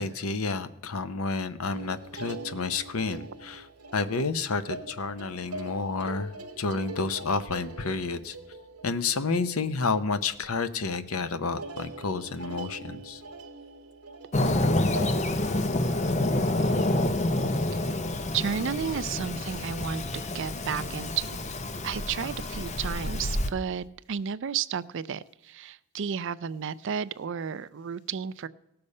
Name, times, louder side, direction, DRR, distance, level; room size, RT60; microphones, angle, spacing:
voice 1, 0.0-3.7 3.9-8.4 8.8-13.2, left 4 dB, 70° left, 12 dB, 0.8 m, -30 dB
sound 1, 1.7-10.5 10.8-11.2 11.6-15.2, right 2 dB, 85° right, 1.3 m, -43 dB
Fireworks, 14.3-23.5, left 1 dB, 30° left, 0.6 m, -28 dB
voice 2, 18.3-21.4 21.8-28.5, right 7 dB, 55° right, 15 dB, 0.4 m, -32 dB
17.5 x 6.8 x 5.4 m, 0.91 s
head